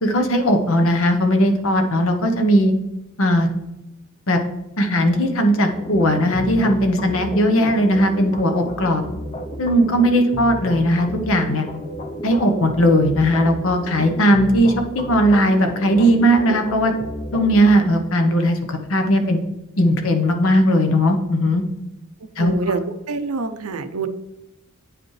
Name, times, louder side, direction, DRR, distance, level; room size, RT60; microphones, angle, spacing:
voice 1, 0.0-2.7 3.2-3.5 4.3-4.4 4.8-9.0 9.6-11.7 12.2-16.9 17.3-19.4 19.8-21.6 22.4-22.5, equal, 65° left, 5 dB, 1.0 m, -18 dB
sound 1, 5.7-17.8, equal, 30° left, 0.7 m, -32 dB
voice 2, 22.4-24.1, right 4 dB, 75° right, 10 dB, 0.6 m, -26 dB
8.9 x 5.0 x 3.2 m, 0.92 s
head